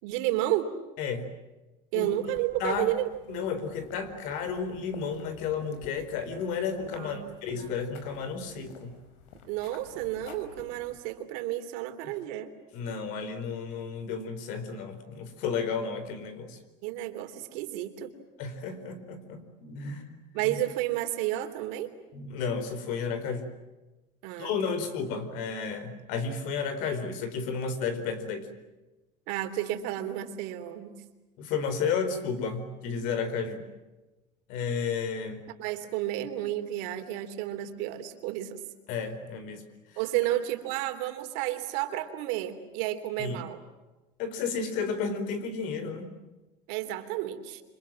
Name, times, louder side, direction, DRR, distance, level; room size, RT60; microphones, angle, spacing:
voice 1, 0.0-0.7 1.9-3.1 6.9-7.7 9.5-12.5 16.8-18.1 19.8-20.0 20.3-21.9 24.2-24.8 29.3-31.0 35.6-38.6 40.0-43.6 46.7-47.6, right 14 dB, 75° right, 8 dB, 3.3 m, -31 dB
voice 2, 1.0-1.3 1.9-2.1 2.6-2.9 3.3-8.9 12.7-16.6 18.4-20.0 20.4-20.6 22.1-23.5 24.4-28.5 31.4-33.6 34.5-35.4 38.9-39.6 43.2-43.4 44.2-46.1, left 5 dB, 60° left, 11 dB, 4.5 m, -32 dB
sound 1, 2.1-11.1, left 4 dB, 90° left, 5.4 m, -51 dB
29.5 x 25.5 x 7.6 m, 1.1 s
cardioid pair, 170°, 15 cm